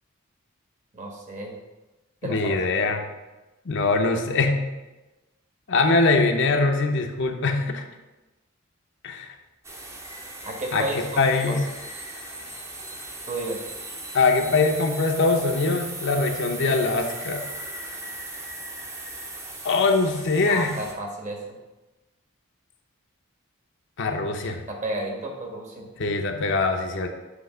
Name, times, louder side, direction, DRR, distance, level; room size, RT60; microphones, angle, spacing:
voice 1, 0.9-1.6 2.2-2.9 10.4-11.6 13.3-13.6 20.5-21.4 24.7-25.9, right 1 dB, 35° right, 0 dB, 1.3 m, -32 dB
voice 2, 2.2-3.0 3.7-4.6 5.7-7.8 9.0-9.3 10.7-10.8 11.2-11.6 14.1-17.4 19.6-20.7 24.0-24.6 26.0-27.1, left 3 dB, 60° left, 4 dB, 0.7 m, -22 dB
sound 1, 9.6-20.9, right 2 dB, 15° right, 0.7 m, -38 dB
7.9 x 2.9 x 5.5 m, 1.1 s
head